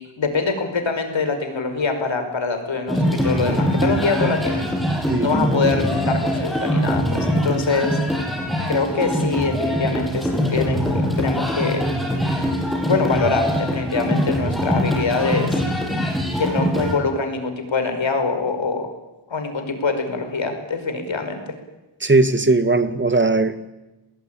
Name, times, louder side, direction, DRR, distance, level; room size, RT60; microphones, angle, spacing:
voice 1, 0.2-4.7 5.2-8.0 8.7-11.9 12.4-12.5 12.9-15.6 16.4-18.9 19.3-21.5, left 4 dB, 75° left, 7 dB, 5.3 m, -24 dB
sound 1, 2.9-17.0, equal, ahead, 7.7 m, -22 dB
voice 2, 5.1-5.5 22.0-23.7, right 3 dB, 25° right, 10 dB, 1.9 m, -18 dB
29.5 x 20.0 x 9.0 m, 1.0 s
wide cardioid pair, 105°, 46 cm